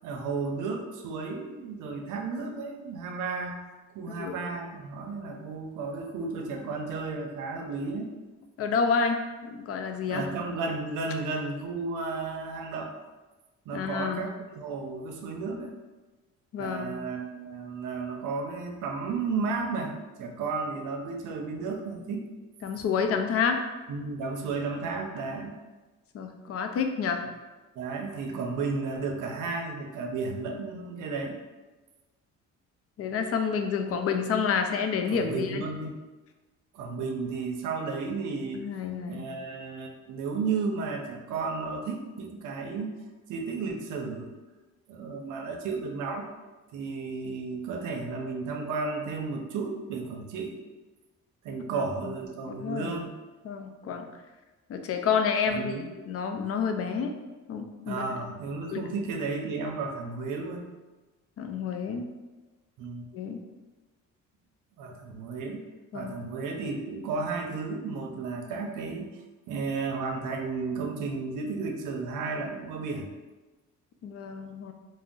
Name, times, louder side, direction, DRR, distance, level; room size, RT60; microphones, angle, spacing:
voice 1, 0.0-3.6 3.9-8.1 10.1-12.9 13.7-15.7 16.6-22.3 23.9-25.5 27.8-31.4 35.1-35.9 36.7-38.7 39.1-43.0 43.3-44.3 44.9-46.3 46.7-50.6 51.4-53.1 55.5-55.8 57.9-60.7 62.8-63.1 64.8-65.7 65.9-69.2 69.5-73.1, right 4 dB, 80° right, 2 dB, 0.5 m, -33 dB
voice 2, 8.6-9.2 9.4-10.2 13.7-14.3 16.5-17.0 22.6-23.6 26.1-27.2 33.0-35.6 38.5-39.3 52.0-52.1 52.5-53.0 53.4-54.0 54.7-57.1 57.5-58.1 58.7-58.8 61.4-62.1 63.1-63.4 65.9-66.1 74.0-74.7, left 6 dB, 50° left, 5 dB, 0.4 m, -29 dB
2.5 x 2.0 x 3.7 m, 1.2 s
cardioid pair, 90°, 30 cm